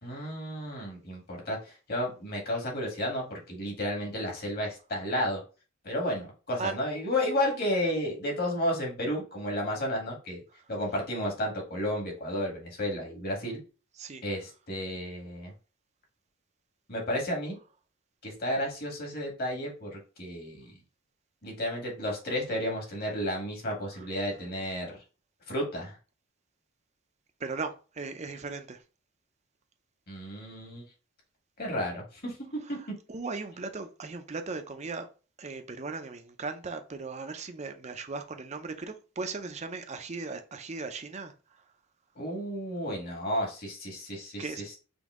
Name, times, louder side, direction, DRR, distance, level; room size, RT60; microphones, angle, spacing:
voice 1, 0.0-5.4 5.8-10.4 10.7-13.6 14.2-15.5 16.9-17.6 18.2-20.7 21.4-24.9 25.5-26.0 30.1-30.8 31.6-32.8 42.1-44.8, left 1 dB, 45° left, 1.7 m, -32 dB
voice 2, 27.4-28.8 33.1-35.1 35.4-41.3 44.4-44.6, right 4 dB, 30° right, 0.5 m, -37 dB
5.3 x 2.7 x 3.6 m
head